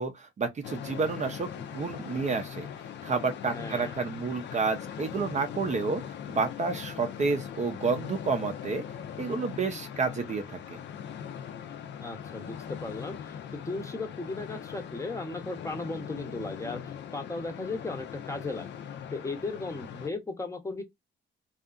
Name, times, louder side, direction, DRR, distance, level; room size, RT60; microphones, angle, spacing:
voice 1, 0.0-2.7 3.0-6.0 6.3-8.8 9.2-10.4, right 4 dB, 35° right, 0.5 m, -30 dB
sound 1, 0.6-20.1, left 8 dB, 65° left, 0.5 m, -40 dB
voice 2, 3.5-3.9 12.0-13.4 13.6-18.7 19.1-20.8, left 3 dB, 15° left, 0.7 m, -36 dB
2.7 x 2.4 x 2.3 m
cardioid pair, 90°, 20 cm